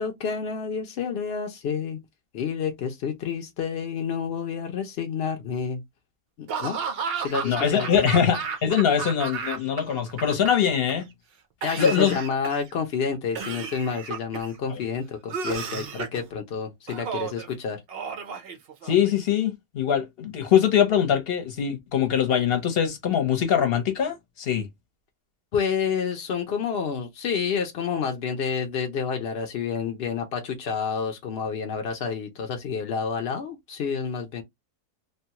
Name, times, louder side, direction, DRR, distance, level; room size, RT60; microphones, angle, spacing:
voice 1, 0.0-2.0 2.3-5.8 6.4-6.8 7.2-8.2 11.6-17.8 25.5-34.4, left 6 dB, 70° left, 0.5 m, -29 dB
Laughter / Cough, 6.5-9.8 10.1-10.9 11.6-12.7 13.3-14.5 15.3-16.2 16.9-17.5 17.9-19.1, right 6 dB, 70° right, 0.5 m, -33 dB
voice 2, 7.4-11.1 11.8-12.2 14.7-14.8 18.8-24.7, left 8 dB, 45° left, 0.8 m, -23 dB
3.1 x 2.2 x 2.8 m
omnidirectional pair, 1.7 m